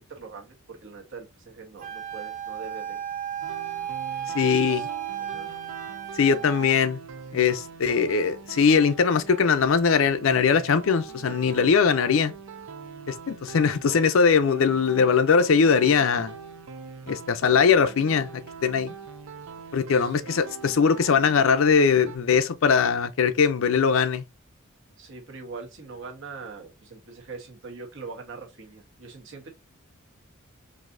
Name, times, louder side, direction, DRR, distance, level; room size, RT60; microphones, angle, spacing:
voice 1, 0.0-3.0 4.4-4.9 5.2-5.5 11.3-11.6 19.9-20.1 25.0-29.5, right 4 dB, 65° right, 1.1 m, -42 dB
Wind instrument woodwind instrument, 1.8-6.8, right 9 dB, 35° right, 0.6 m, -34 dB
sound 1, 3.4-22.2, right 5 dB, 80° right, 0.5 m, -42 dB
voice 2, 4.3-4.9 6.2-7.0 7.3-12.3 13.1-16.3 17.1-18.3 18.6-18.9 19.7-24.2, left 6 dB, 65° left, 0.5 m, -21 dB
4.0 x 2.7 x 2.5 m
head